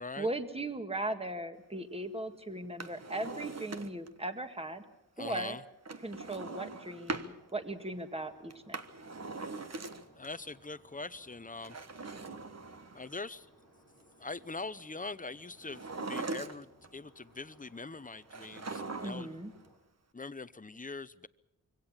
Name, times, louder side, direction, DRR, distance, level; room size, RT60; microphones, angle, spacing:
voice 1, 0.2-4.8 5.2-5.6 6.0-8.8 19.0-19.5, right 2 dB, 15° right, 7 dB, 1.8 m, -38 dB
Drawer open or close, 2.6-4.2 5.8-7.3 8.5-10.3 11.5-13.2 15.6-16.9 18.3-19.4 19.7-19.8, right 3 dB, 50° right, 1.3 m, -41 dB
voice 2, 5.2-5.6 10.1-12.1 12.9-13.5 14.2-19.4 20.1-21.3, left 3 dB, 25° left, 15 dB, 0.8 m, -43 dB
sound 1, 7.2-19.8, right 1 dB, 70° right, 8.0 m, -63 dB
24.0 x 17.0 x 7.3 m, 0.89 s
wide cardioid pair, 70°, 33 cm